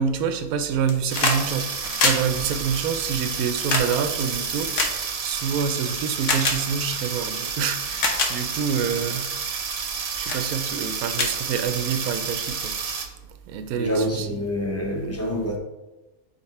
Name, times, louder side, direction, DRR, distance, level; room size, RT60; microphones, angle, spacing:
voice 1, 0.0-9.4 10.2-12.8 13.5-14.3, right 7 dB, 90° right, 8 dB, 1.1 m, -27 dB
sound 1, 0.7-1.4 1.7-5.6 6.2-6.6 7.4-7.5 7.9-8.3 8.9-9.2 9.7-10.0 10.3-10.4 10.8-10.9 11.1-12.1 13.2-13.3, left 3 dB, 60° left, 1.2 m, -25 dB
sound 2, 1.1-13.1, right 6 dB, 55° right, 0.9 m, -30 dB
voice 2, 13.8-15.6, equal, 15° left, 0 dB, 0.7 m, -26 dB
5.2 x 4.5 x 4.2 m, 1.1 s
omnidirectional pair, 1.5 m